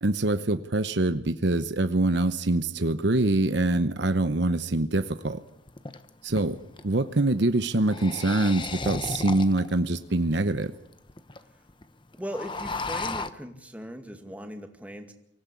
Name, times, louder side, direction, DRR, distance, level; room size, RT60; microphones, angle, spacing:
voice 1, 0.0-5.4 6.2-6.6 6.8-10.7, right 2 dB, 60° right, 10 dB, 0.9 m, -24 dB
sound 1, 5.0-5.1 5.7-6.9 7.7-9.8 10.3-10.4 10.6-10.7 10.9-11.4 11.7-11.8 12.1-13.3, left 3 dB, 25° left, 0.9 m, -34 dB
voice 2, 12.1-15.1, equal, 10° right, 5 dB, 2.1 m, -38 dB
24.5 x 16.0 x 8.4 m, 0.80 s
head